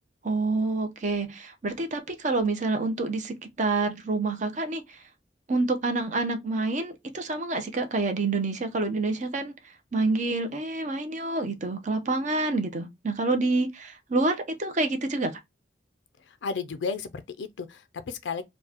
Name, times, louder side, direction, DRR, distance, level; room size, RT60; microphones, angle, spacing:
voice 1, 0.2-5.0 5.5-9.5 9.9-15.3, right 3 dB, 45° right, 0.7 m, -27 dB
voice 2, 16.4-18.4, left 5 dB, 85° left, 0.4 m, -33 dB
4.5 x 2.3 x 2.8 m
head